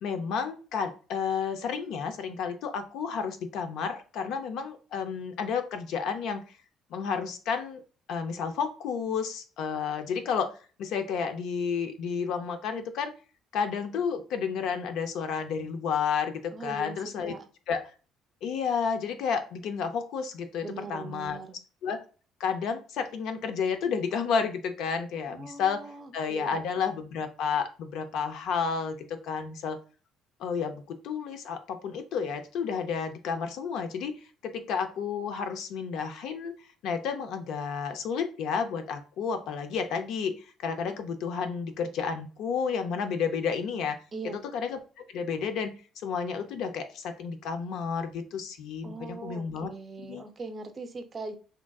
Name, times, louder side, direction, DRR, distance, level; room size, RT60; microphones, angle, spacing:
voice 1, 0.0-6.4 6.9-7.8 8.1-10.5 10.8-13.1 13.5-17.3 17.7-17.8 18.4-21.4 21.8-22.0 22.4-25.8 26.1-29.8 30.4-34.1 34.4-36.5 36.8-40.4 40.6-44.0 44.3-49.7 50.0-50.2, left 6 dB, 70° left, 8 dB, 0.5 m, -31 dB
voice 2, 16.5-17.0 17.2-17.5 20.6-21.6 25.3-26.6 44.1-44.4 48.8-51.4, right 3 dB, 30° right, 7 dB, 0.5 m, -40 dB
3.7 x 2.5 x 2.3 m, 0.36 s
cardioid pair, 130°, 0 cm